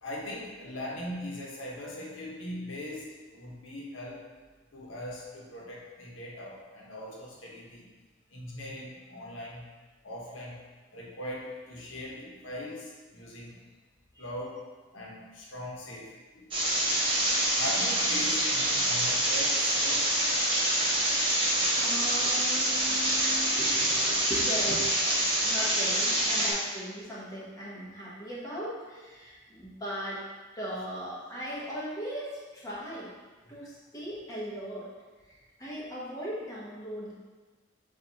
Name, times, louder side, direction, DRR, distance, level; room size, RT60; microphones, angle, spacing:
voice 1, 0.0-4.3 4.7-7.8 8.3-9.7 10.0-10.6 10.9-13.6 14.2-14.7 14.9-16.5 17.5-20.2, left 1 dB, 85° left, -4 dB, 1.0 m, -40 dB
sound 1, 16.5-26.5, right 1 dB, 30° right, 1.1 m, -26 dB
voice 2, 21.0-24.9 25.4-30.3 30.6-33.1 33.5-34.9 35.3-37.1, equal, 20° left, -7 dB, 1.0 m, -38 dB
7.1 x 2.6 x 2.8 m, 1.3 s
head